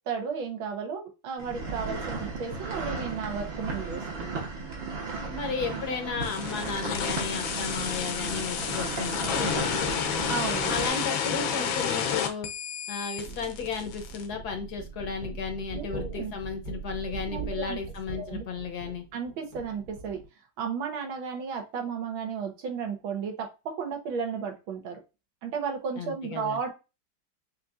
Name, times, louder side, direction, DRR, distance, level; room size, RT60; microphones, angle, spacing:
voice 1, 0.1-4.3 10.3-10.9 15.7-16.3 17.3-17.8 18.1-18.4 19.1-20.2 20.6-23.5 23.8-25.0 25.4-26.7, right 6 dB, 85° right, 3 dB, 1.9 m, -34 dB
sound 1, 1.4-10.9, right 4 dB, 70° right, 2.1 m, -35 dB
voice 2, 5.3-10.2 10.7-12.5 12.9-19.0 26.0-26.6, left 5 dB, 65° left, 5 dB, 1.1 m, -34 dB
sound 2, 6.2-14.3, left 7 dB, 80° left, 1.5 m, -30 dB
sound 3, 13.2-20.3, right 4 dB, 50° right, 1.6 m, -41 dB
6.8 x 2.7 x 2.4 m, 0.28 s
omnidirectional pair, 2.1 m